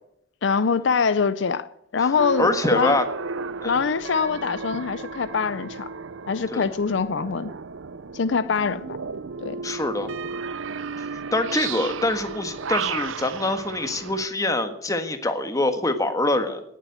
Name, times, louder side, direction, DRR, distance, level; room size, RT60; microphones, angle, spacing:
voice 1, 0.4-1.7 1.9-3.0 3.6-5.9 6.3-7.5 8.1-9.0 9.4-9.6, left 5 dB, 65° left, 13 dB, 0.5 m, -24 dB
sound 1, 2.2-14.3, right 5 dB, 80° right, 0.7 m, -34 dB
voice 2, 2.4-3.0 3.6-3.8 6.5-6.7 9.6-10.1 11.3-16.6, left 2 dB, 15° left, 7 dB, 1.5 m, -24 dB
18.0 x 7.5 x 9.1 m, 0.75 s
head